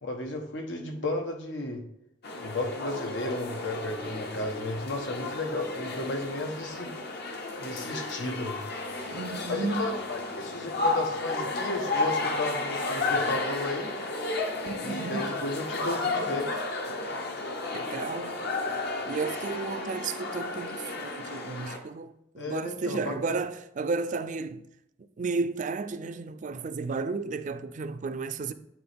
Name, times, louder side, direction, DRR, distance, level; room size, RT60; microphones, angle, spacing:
voice 1, 0.0-1.8 2.4-6.9 7.6-8.6 9.5-13.9 14.8-16.6 22.4-23.1, left 2 dB, 90° left, 1.2 m, -33 dB
sound 1, 2.2-21.8, left 3 dB, 60° left, 0.9 m, -33 dB
voice 2, 9.1-10.0 14.6-15.3 17.7-18.4 19.1-24.6 25.2-28.5, right 4 dB, 45° right, 0.4 m, -33 dB
9.1 x 4.1 x 3.5 m
head